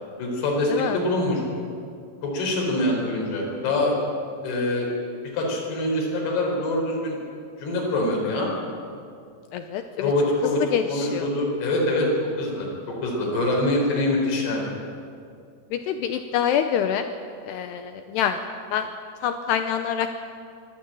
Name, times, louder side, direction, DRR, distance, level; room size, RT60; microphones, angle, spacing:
voice 1, 0.2-1.4 2.2-3.9 4.4-4.9 5.3-7.2 7.6-8.5 10.0-10.6 10.9-12.1 12.4-12.7 13.0-14.7, left 1 dB, 60° left, -1 dB, 6.1 m, -24 dB
voice 2, 9.5-9.8 10.4-11.3 15.7-17.1 17.4-18.4 18.7-18.9 19.2-20.1, left 9 dB, 80° left, 8 dB, 2.5 m, -25 dB
23.5 x 13.5 x 8.9 m, 2.4 s
omnidirectional pair, 5.4 m